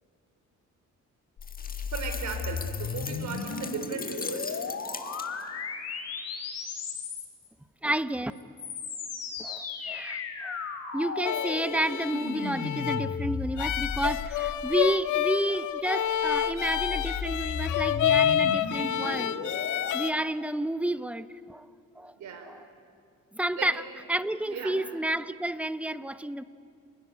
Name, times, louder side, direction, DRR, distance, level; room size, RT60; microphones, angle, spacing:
sound 1, 1.4-7.5 8.3-15.0 16.0-19.9, left 5 dB, 55° left, 3.7 m, -35 dB
sound 2, 1.4-5.6, left 5 dB, 30° left, 1.5 m, -40 dB
voice 1, 1.9-4.8 22.1-22.5 23.5-23.7 24.5-24.8, right 5 dB, 70° right, 6 dB, 4.8 m, -37 dB
voice 2, 7.8-8.3 9.4-10.6 10.9-19.3 19.9-21.7 22.0-22.1 22.5-22.6 23.3-23.8 24.1-26.4, right 1 dB, 5° right, 12 dB, 0.9 m, -30 dB
sound 3, 11.2-20.1, left 10 dB, 80° left, 1.1 m, -29 dB
29.5 x 20.5 x 9.7 m, 2.4 s
cardioid pair, 90°, 30 cm